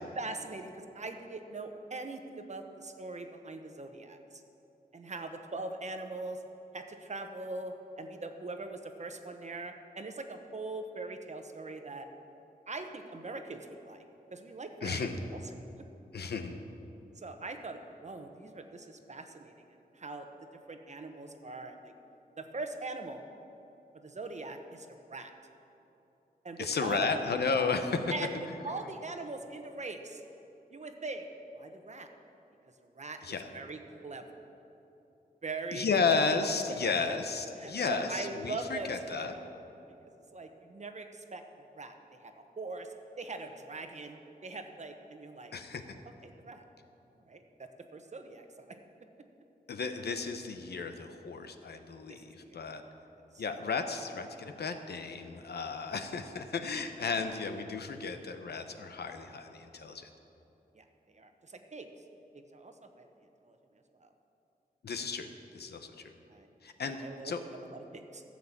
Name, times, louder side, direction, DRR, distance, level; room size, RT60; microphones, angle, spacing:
voice 1, 0.1-4.4 4.9-6.4 6.7-12.1 12.7-14.0 14.3-15.0 15.3-15.4 17.2-19.7 19.9-20.3 20.7-21.9 22.4-23.2 24.0-25.3 26.4-27.1 28.1-30.2 30.7-31.2 31.5-32.1 32.9-33.2 33.5-34.2 35.4-36.2 37.6-39.4 40.3-41.4 41.7-41.9 42.2-42.9 43.2-45.5 46.2-46.6 47.2-48.8 52.1-52.9 53.3-53.4 60.7-61.9 62.3-63.1 63.5-63.6 64.0-64.1 66.3-66.5 66.8-67.3 67.6-68.2, right 3 dB, 45° right, 6 dB, 1.0 m, -41 dB
voice 2, 14.8-15.2 16.1-16.6 26.6-28.0 33.2-33.5 35.7-39.3 45.5-45.9 49.7-52.8 53.4-60.1 64.8-65.3 65.5-65.9 66.6-67.0 67.2-67.4, left 4 dB, 85° left, 7 dB, 0.9 m, -33 dB
13.5 x 7.5 x 7.4 m, 3.0 s
wide cardioid pair, 100°, 16 cm